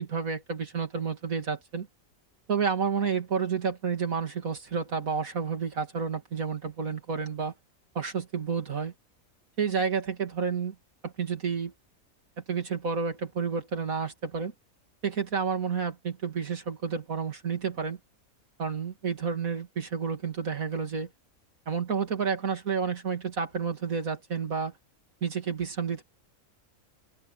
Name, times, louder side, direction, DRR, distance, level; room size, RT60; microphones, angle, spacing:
voice 1, 0.0-1.9 2.5-7.5 7.9-8.9 9.6-10.7 11.0-11.7 12.4-14.5 15.0-18.0 18.6-21.1 21.7-24.7 25.2-26.0, right 6 dB, 85° right, 3.1 m, -30 dB
open air
omnidirectional pair, 1.4 m